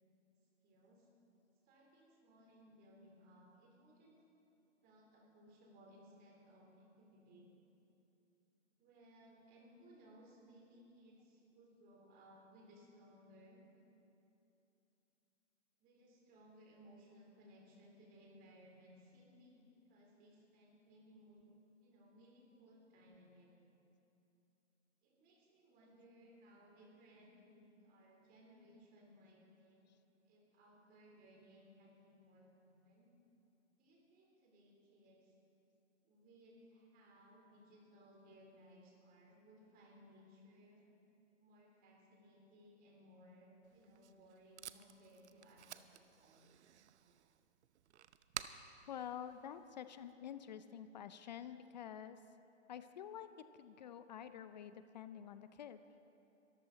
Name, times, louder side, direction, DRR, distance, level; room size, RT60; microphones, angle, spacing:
voice 1, 0.6-1.1 1.6-4.2 4.8-7.7 8.8-13.6 15.8-21.5 21.8-23.5 25.0-29.8 30.2-33.1 33.8-35.3 36.0-40.9 41.4-46.5, equal, 25° right, -2 dB, 3.8 m, -63 dB
Packing tape duct tape, 43.6-50.1, right 10 dB, 65° right, 0.8 m, -53 dB
voice 2, 48.9-52.2 52.7-55.8, left 9 dB, 40° left, 12 dB, 0.5 m, -49 dB
22.0 x 14.0 x 4.1 m, 2.8 s
hypercardioid pair, 140°, 36 cm